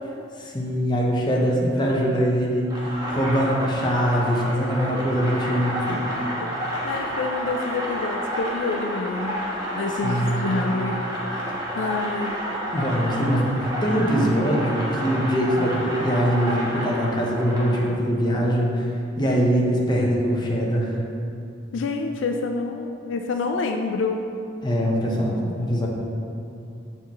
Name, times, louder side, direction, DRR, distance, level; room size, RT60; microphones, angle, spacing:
voice 1, 0.5-6.0 10.0-10.6 12.7-18.9 19.2-21.0 24.6-25.9, equal, 25° left, -2 dB, 1.0 m, -23 dB
sound 1, 2.7-17.9, equal, 25° right, 1.2 m, -30 dB
voice 2, 6.4-9.4 9.7-11.0 11.3-11.4 11.7-12.4 21.7-24.2, left 3 dB, 75° left, 4 dB, 0.4 m, -28 dB
7.0 x 6.6 x 3.0 m, 2.6 s
head